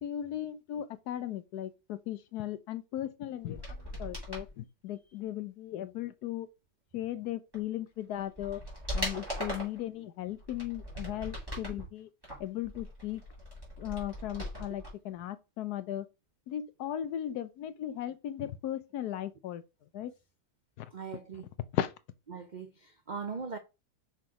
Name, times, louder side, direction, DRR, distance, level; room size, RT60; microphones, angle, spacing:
voice 1, 0.0-3.6 4.0-6.5 6.9-8.6 8.9-12.1 12.4-13.2 13.8-16.1 16.5-19.6 19.9-20.1 20.8-20.9 21.7-21.9, left 11 dB, 70° left, 1.2 m, -37 dB
sound 1, 3.4-4.5 7.5-7.6 8.1-9.8 10.4-11.8 12.2-14.9 15.2-15.3, equal, 15° right, 3.3 m, -39 dB
voice 2, 20.9-21.5 22.3-23.6, right 5 dB, 85° right, 0.4 m, -40 dB
5.8 x 4.0 x 4.8 m
omnidirectional pair, 1.8 m